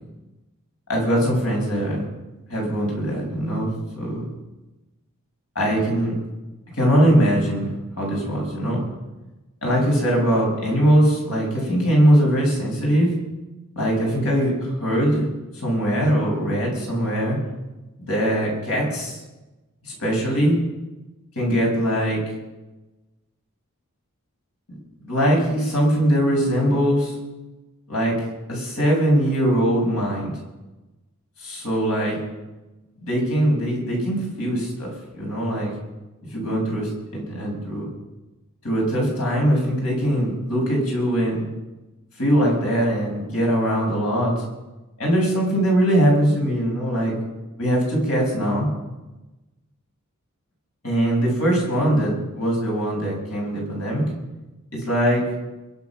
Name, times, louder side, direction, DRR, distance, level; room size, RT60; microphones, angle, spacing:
voice 1, 0.9-2.0 2.5-3.7 3.9-4.2 5.5-6.2 6.7-8.8 9.6-13.1 13.7-15.3 15.5-17.4 18.1-19.2 19.8-20.6 21.3-22.2 24.7-24.8 25.0-27.2 27.9-28.2 28.5-30.3 31.4-32.2 33.0-35.7 36.3-37.9 38.6-41.5 42.2-44.4 45.0-47.1 47.6-48.7 50.8-54.0 54.7-55.3, equal, 75° left, -1 dB, 6.9 m, -21 dB
22.5 x 9.4 x 6.1 m, 1.1 s
head